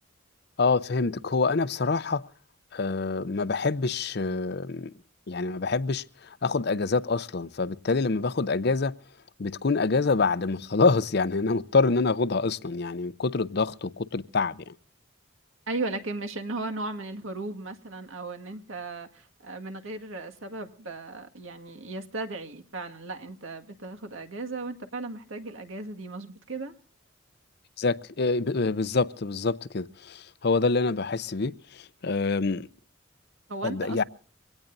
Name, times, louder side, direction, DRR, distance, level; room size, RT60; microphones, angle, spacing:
voice 1, 0.6-2.2 2.7-4.9 5.3-8.9 9.4-14.7 27.8-32.7 33.6-34.0, left 4 dB, 55° left, 0.6 m, -26 dB
voice 2, 15.7-26.7 33.5-34.0, right 3 dB, 90° right, 1.9 m, -36 dB
23.5 x 18.0 x 2.6 m
head